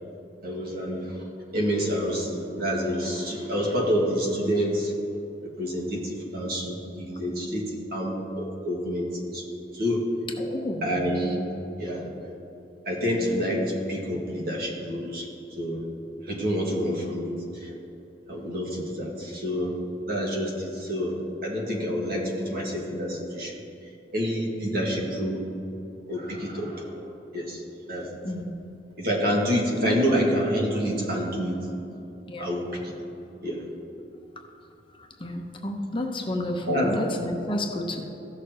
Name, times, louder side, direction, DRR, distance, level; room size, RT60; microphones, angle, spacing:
voice 1, 0.4-1.2 1.5-4.9 5.6-10.2 10.8-11.4 11.8-12.1 12.8-15.3 15.6-15.9 16.2-17.7 18.3-23.5 24.1-25.6 26.1-27.6 27.9-28.2 29.0-31.8 32.4-33.0 33.4-33.7 36.6-37.0, equal, 55° right, -2 dB, 1.8 m, -28 dB
voice 2, 10.4-11.1 28.2-28.5 29.8-29.9 32.3-32.5 35.0-38.0, left 1 dB, 30° left, 2 dB, 0.8 m, -30 dB
15.5 x 6.5 x 2.9 m, 3.0 s
head